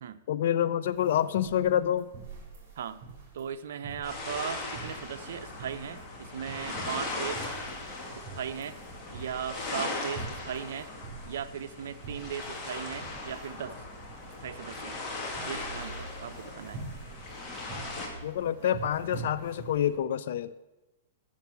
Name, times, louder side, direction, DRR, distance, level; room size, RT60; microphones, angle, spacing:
voice 1, 0.3-2.1 18.2-20.5, left 10 dB, 65° left, 14 dB, 0.5 m, -27 dB
sound 1, 0.8-20.0, right 3 dB, 40° right, 4.4 m, -46 dB
voice 2, 3.3-7.4 8.3-8.7 9.1-10.9 11.2-13.8 14.4-15.0 15.4-16.8, right 8 dB, 70° right, 10 dB, 0.7 m, -37 dB
sound 2, 4.0-18.1, left 2 dB, 25° left, 2.3 m, -39 dB
7.5 x 7.0 x 8.2 m, 1.0 s
hypercardioid pair, 140°, 0 cm